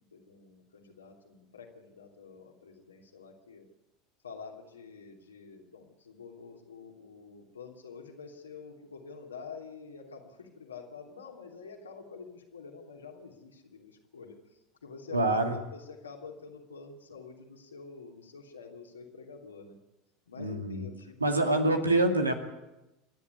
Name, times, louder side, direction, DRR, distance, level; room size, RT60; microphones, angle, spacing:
voice 1, 0.0-3.7 4.2-19.8 20.3-21.4, left 5 dB, 80° left, 2 dB, 3.0 m, -48 dB
voice 2, 15.1-15.5 20.4-20.9 21.2-22.3, right 2 dB, 85° right, 5 dB, 2.3 m, -26 dB
27.5 x 11.0 x 9.6 m, 0.99 s
figure-of-eight pair, 75°, 0 cm